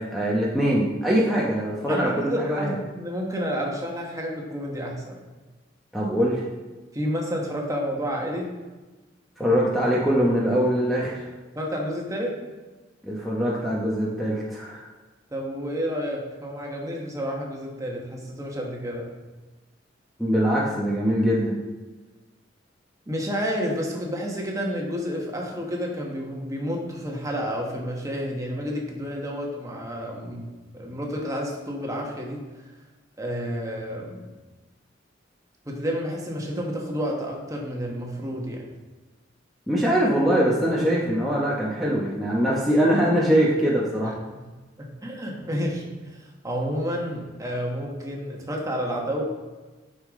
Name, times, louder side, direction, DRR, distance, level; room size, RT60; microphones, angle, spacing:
voice 1, 0.0-2.8 5.9-6.4 9.4-11.3 13.0-14.8 20.2-21.6 39.7-44.2, equal, ahead, -6 dB, 0.9 m, -22 dB
voice 2, 1.9-5.2 6.9-8.5 11.5-12.4 15.3-19.1 23.1-32.4 33.2-34.3 35.6-38.7 44.0-44.4 44.8-49.2, equal, 20° right, -1 dB, 1.3 m, -30 dB
9.5 x 5.6 x 3.7 m, 1.2 s
head